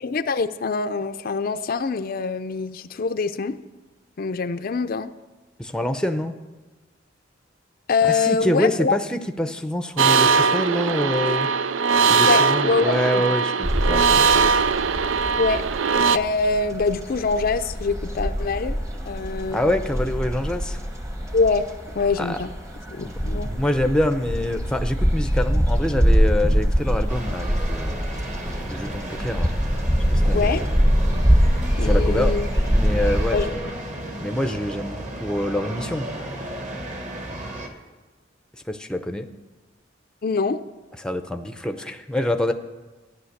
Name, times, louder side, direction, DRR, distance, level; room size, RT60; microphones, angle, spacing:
voice 1, 0.0-3.6 4.2-5.1 7.9-9.0 12.2-13.2 15.4-15.6 16.1-18.7 19.1-19.7 21.3-21.6 22.0-22.5 22.9-23.5 30.3-30.7 31.8-32.5 33.3-33.7 40.2-40.6, left 4 dB, 50° left, 9 dB, 0.5 m, -24 dB
voice 2, 5.6-6.3 8.0-11.5 12.1-14.3 19.5-20.8 22.2-22.4 23.0-28.0 28.7-29.5 30.1-30.5 31.8-32.3 32.7-33.6 34.2-36.1 38.7-39.3 41.0-42.5, left 1 dB, 5° left, 7 dB, 0.6 m, -26 dB
sound 1, 10.0-16.2, right 5 dB, 85° right, 0.4 m, -20 dB
sound 2, 13.6-33.5, equal, 15° right, 1.0 m, -23 dB
sound 3, 27.1-37.7, right 1 dB, 40° right, 1.5 m, -34 dB
14.0 x 10.0 x 6.6 m, 1.3 s
head